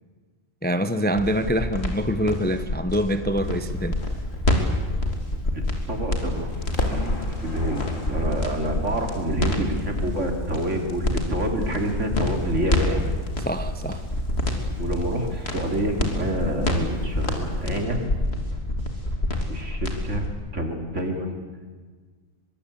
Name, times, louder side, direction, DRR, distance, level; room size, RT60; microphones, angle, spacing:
voice 1, 0.6-4.0 13.4-14.0, equal, 10° left, 10 dB, 0.8 m, -25 dB
sound 1, 1.1-20.3, left 1 dB, 50° left, 3.4 m, -27 dB
Crackle, 4.0-6.2 6.5-17.8, left 2 dB, 75° left, 3.7 m, -38 dB
voice 2, 5.9-13.0 14.8-18.1 19.5-20.3 20.5-21.5, right 1 dB, 65° right, 4 dB, 3.4 m, -28 dB
24.0 x 23.0 x 8.5 m, 1.4 s
omnidirectional pair, 1.4 m